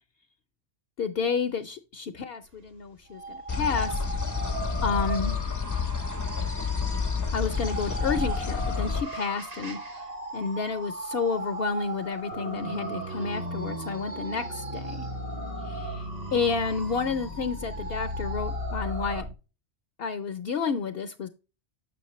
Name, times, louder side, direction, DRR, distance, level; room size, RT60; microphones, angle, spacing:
voice 1, 1.0-4.0 4.8-5.4 7.3-9.8 10.3-15.1 15.6-19.2 20.0-21.3, left 5 dB, 60° left, 9 dB, 0.8 m, -30 dB
sound 1, 3.1-19.2, right 2 dB, 60° right, 2.1 m, -38 dB
sound 2, 3.5-9.0, left 5 dB, 20° left, 0.5 m, -29 dB
sound 3, 12.3-19.3, equal, 35° right, 0.8 m, -36 dB
7.7 x 6.2 x 3.0 m, 0.31 s
omnidirectional pair, 1.2 m